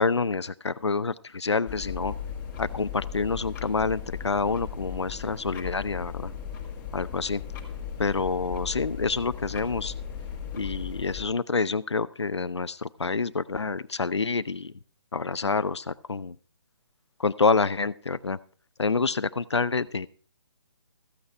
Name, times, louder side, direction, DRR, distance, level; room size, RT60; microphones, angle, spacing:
voice 1, 0.0-2.1 2.6-6.3 6.9-7.4 8.0-9.9 10.5-14.7 15.1-16.4 17.2-18.4 18.8-20.1, left 4 dB, 80° left, 15 dB, 0.6 m, -27 dB
sound 1, 1.6-11.3, left 8 dB, 15° left, 2.0 m, -37 dB
14.5 x 8.7 x 4.5 m, 0.42 s
figure-of-eight pair, 140°, 14 cm